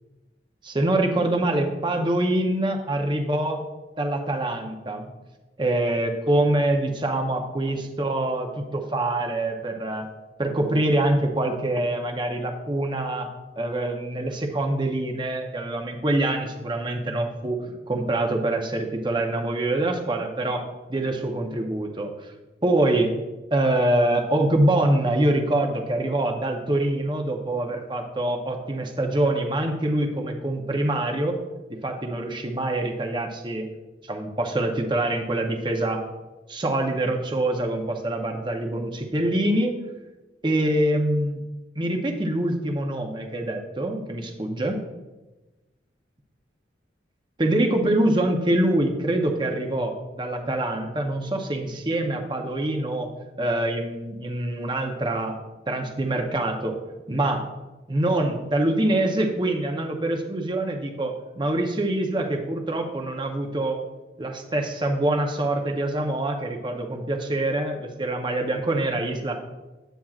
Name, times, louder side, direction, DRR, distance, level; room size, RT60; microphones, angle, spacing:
voice 1, 0.6-3.6 4.0-5.1 5.6-10.1 10.4-13.3 13.6-17.6 17.9-22.1 22.6-23.1 23.5-31.4 31.7-33.7 34.0-36.1 36.5-39.8 40.4-41.4 41.8-44.8 47.4-53.1 53.4-55.4 55.7-56.8 57.1-57.4 57.9-63.8 64.2-69.4, right 1 dB, 25° right, 3 dB, 0.8 m, -25 dB
9.1 x 8.7 x 2.4 m, 1.1 s
head